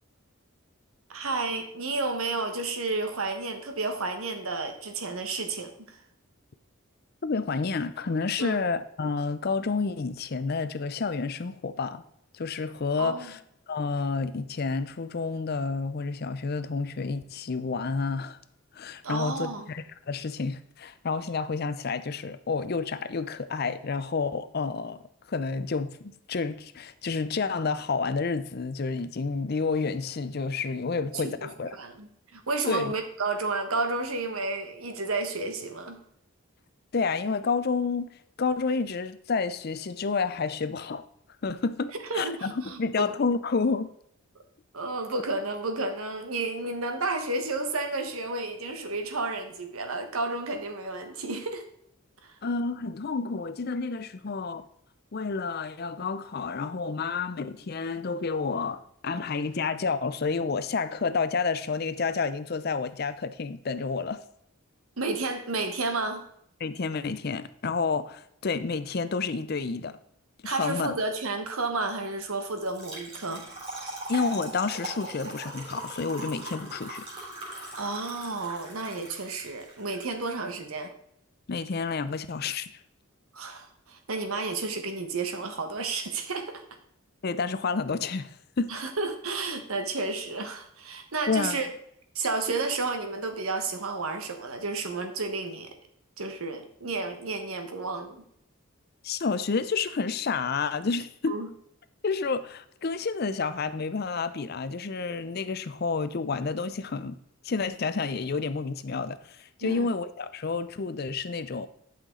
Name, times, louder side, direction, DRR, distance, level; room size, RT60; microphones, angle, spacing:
voice 1, 1.1-6.0 8.4-8.6 13.0-13.3 19.0-19.7 31.1-36.0 42.1-43.1 44.7-51.6 52.2-52.4 65.0-66.3 70.4-73.4 77.7-80.9 83.3-86.6 88.7-91.7 92.1-95.7 96.2-98.2 101.3-101.5 109.6-109.9, right 3 dB, 80° right, 1.3 m, -31 dB
voice 2, 7.2-12.0 12.3-13.4 13.7-18.4 18.7-25.0 25.3-31.8 32.7-32.9 36.9-38.1 38.4-41.0 41.4-43.9 52.4-54.6 55.1-64.2 66.6-70.0 70.4-70.9 74.1-77.0 77.5-77.8 81.5-82.7 87.2-88.7 91.3-91.6 99.0-101.4 102.0-107.2 107.4-111.7, left 4 dB, 45° left, 0.5 m, -30 dB
Trickle dribble / Fill (with liquid), 72.6-80.0, right 1 dB, 25° right, 3.3 m, -39 dB
11.0 x 5.8 x 3.8 m
head